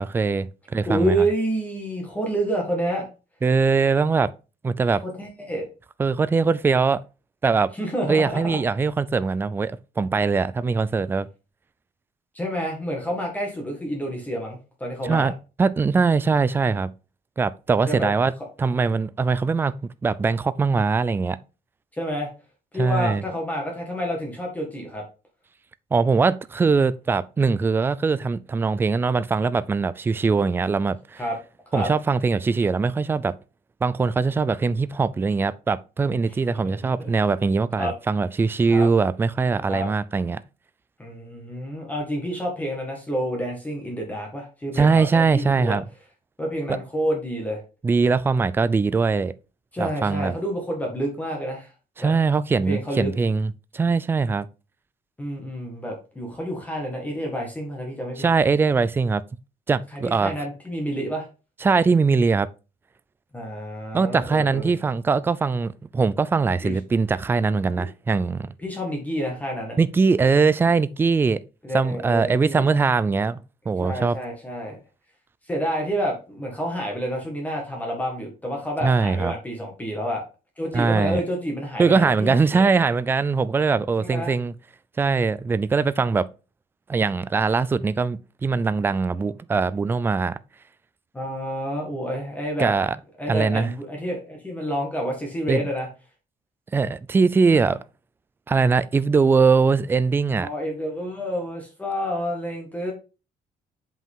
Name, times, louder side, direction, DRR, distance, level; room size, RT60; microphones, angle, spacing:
voice 1, 0.0-1.3 3.4-4.3 4.6-5.0 6.0-7.0 7.4-7.7 8.1-11.3 15.0-15.3 15.6-16.9 17.4-18.3 18.6-19.8 20.0-21.4 22.7-23.2 25.9-31.2 31.7-33.4 33.8-40.4 44.7-45.8 47.8-49.3 49.8-50.3 52.0-54.5 58.2-59.2 59.7-60.3 61.6-62.5 63.9-68.5 69.8-71.4 71.7-73.4 73.7-74.2 78.8-79.3 80.7-81.2 81.8-84.5 85.0-86.3 86.9-90.4 92.6-93.0 93.3-93.7 95.5-95.6 96.7-97.8 98.5-100.5, right 4 dB, 15° right, 0.3 m, -21 dB
voice 2, 0.8-3.1 5.0-5.7 7.7-8.6 12.3-15.3 17.9-18.1 21.9-22.3 22.7-25.0 31.2-31.4 31.7-31.9 36.5-37.1 37.8-37.9 38.7-38.9 39.6-39.9 41.0-45.8 46.4-47.6 49.7-51.7 52.0-52.1 52.7-53.1 55.2-58.3 59.9-61.3 63.3-64.7 66.6-66.8 67.6-67.8 68.6-69.8 71.6-72.7 73.8-74.8 75.5-80.2 80.6-82.7 84.0-84.3 91.1-92.7 93.2-95.9 100.4-102.9, equal, 10° left, 1.8 m, -29 dB
7.5 x 5.5 x 3.7 m
cardioid pair, 170°, 15 cm